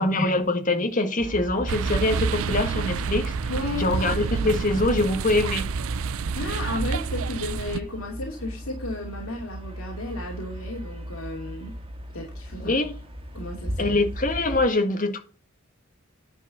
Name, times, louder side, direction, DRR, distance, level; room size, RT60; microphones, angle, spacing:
voice 1, 0.0-3.3 3.8-5.7 12.6-12.9 13.8-15.2, left 2 dB, 35° left, 1.8 m, -24 dB
sound 1, 1.2-14.7, equal, 25° right, 1.9 m, -37 dB
sound 2, 1.7-7.8, right 5 dB, 65° right, 0.4 m, -28 dB
voice 2, 3.5-3.9 6.3-11.7 12.1-12.8 13.3-14.0, left 2 dB, 65° left, 2.7 m, -33 dB
10.5 x 4.7 x 7.0 m
head